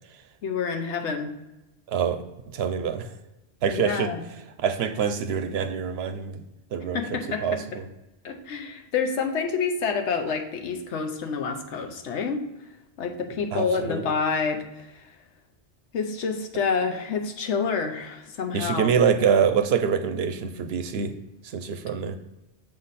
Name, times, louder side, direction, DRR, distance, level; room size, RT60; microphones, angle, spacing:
voice 1, 0.4-1.3 3.7-4.2 6.9-7.6 8.2-12.4 13.0-15.1 15.9-18.9, left 5 dB, 90° left, 5 dB, 1.1 m, -28 dB
voice 2, 1.9-2.2 2.5-3.1 3.6-4.1 4.6-6.4 6.7-7.0 7.4-7.8 13.5-14.0 18.5-21.1 21.5-22.2, right 7 dB, 70° right, 9 dB, 0.8 m, -25 dB
6.9 x 3.9 x 4.1 m, 0.97 s
omnidirectional pair, 1.1 m